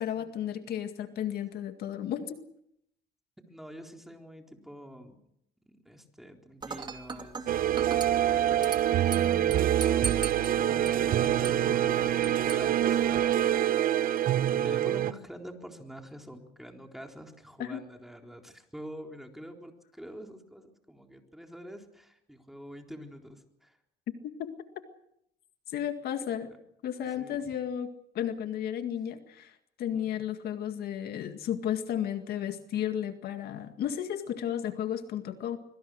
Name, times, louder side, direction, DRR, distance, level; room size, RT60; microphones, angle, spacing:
voice 1, 0.0-2.4 17.6-17.8 24.2-24.5 25.7-26.5 26.8-29.5 29.8-35.6, left 10 dB, 70° left, 8 dB, 2.0 m, -33 dB
voice 2, 3.5-5.2 5.7-7.5 8.3-9.2 9.9-14.0 14.4-23.8 27.1-27.4 29.9-30.1, equal, ahead, 3 dB, 4.0 m, -46 dB
Dishes pots and pans / Glass, 6.6-13.6, right 5 dB, 25° right, 2.6 m, -41 dB
sound 1, 7.5-15.1, right 11 dB, 55° right, 1.1 m, -25 dB
24.5 x 23.0 x 6.4 m, 0.75 s
cardioid pair, 110°, 17 cm